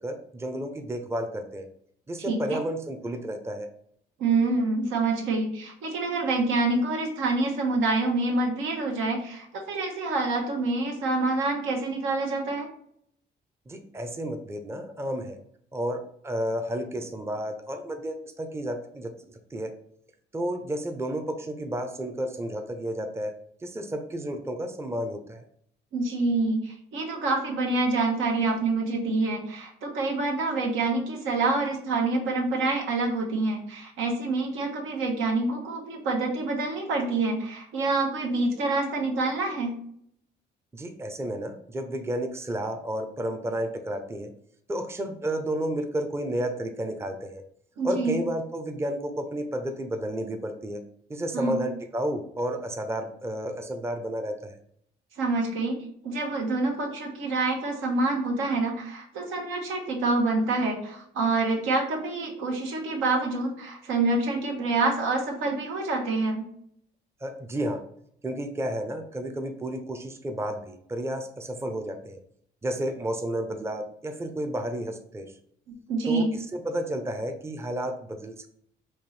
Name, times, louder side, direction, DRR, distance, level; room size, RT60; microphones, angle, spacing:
voice 1, 0.0-1.7 2.1-3.7 13.7-15.4 15.7-19.1 19.5-19.7 20.3-23.3 23.6-25.4 40.7-44.3 44.7-47.4 47.8-50.8 51.1-54.5 67.2-67.8 68.2-72.2 72.6-75.3 76.1-76.3 76.5-78.3, right 1 dB, 15° right, 5 dB, 0.5 m, -31 dB
voice 2, 2.3-2.6 4.2-12.7 25.9-39.8 47.8-48.2 51.3-51.6 55.2-55.8 56.0-66.5 75.9-76.3, right 3 dB, 90° right, 0 dB, 1.1 m, -27 dB
4.3 x 2.6 x 3.2 m, 0.67 s
cardioid pair, 90°, 20 cm